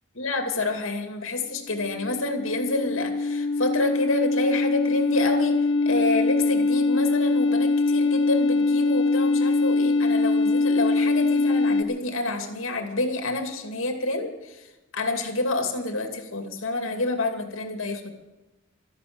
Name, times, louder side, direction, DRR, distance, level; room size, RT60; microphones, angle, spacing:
voice 1, 0.2-18.1, left 2 dB, 85° left, 5 dB, 2.5 m, -28 dB
sound 1, 1.6-11.8, left 3 dB, 70° left, 0.7 m, -23 dB
13.0 x 11.0 x 8.7 m, 1.1 s
head